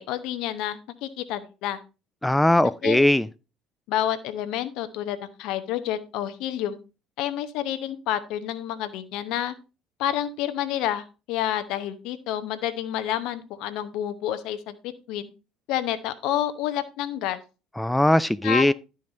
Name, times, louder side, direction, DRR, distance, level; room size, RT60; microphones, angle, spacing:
voice 1, 0.0-1.8 2.8-3.0 3.9-6.8 7.2-9.5 10.0-15.3 15.7-17.4 18.4-18.7, left 11 dB, 60° left, 0.9 m, -29 dB
voice 2, 2.2-3.3 17.8-18.7, left 1 dB, 5° left, 0.4 m, -20 dB
12.0 x 5.2 x 3.9 m
figure-of-eight pair, 55°, 0 cm